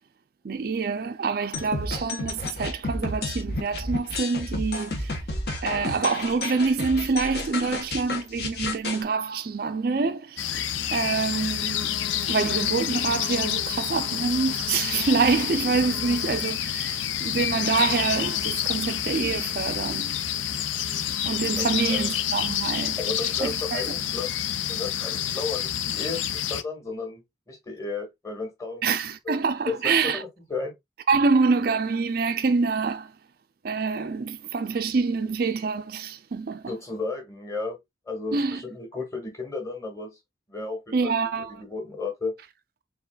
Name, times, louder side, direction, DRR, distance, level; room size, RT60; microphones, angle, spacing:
voice 1, 0.4-5.3 5.6-11.9 12.2-20.2 21.2-23.8 28.8-30.2 31.1-33.1 33.6-36.7 38.3-38.6 40.9-41.6, right 4 dB, 50° right, 0.4 m, -26 dB
sound 1, 1.5-9.0, left 2 dB, 55° left, 1.4 m, -31 dB
sound 2, 10.4-26.6, left 10 dB, 80° left, 0.5 m, -28 dB
voice 2, 21.6-22.2 23.0-24.3 24.7-28.9 29.3-29.4 29.7-30.7 36.7-37.8 38.1-40.2 40.5-41.2 41.5-42.3, left 3 dB, 15° left, 1.9 m, -34 dB
4.5 x 3.9 x 2.3 m
head